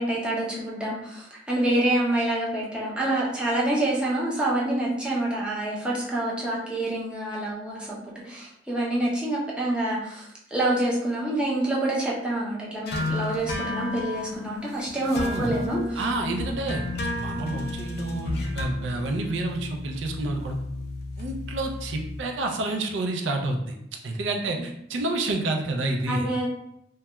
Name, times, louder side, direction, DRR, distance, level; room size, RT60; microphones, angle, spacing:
voice 1, 0.0-8.0 8.3-16.0 24.5-24.6 26.1-26.5, right 1 dB, 5° right, -5 dB, 0.5 m, -27 dB
sound 1, 12.9-22.2, left 2 dB, 60° left, 0.4 m, -32 dB
voice 2, 15.2-15.7 16.0-16.9 17.2-20.6 21.2-23.7 24.0-26.3, right 2 dB, 90° right, 3 dB, 0.4 m, -29 dB
2.2 x 2.2 x 2.9 m, 0.76 s
head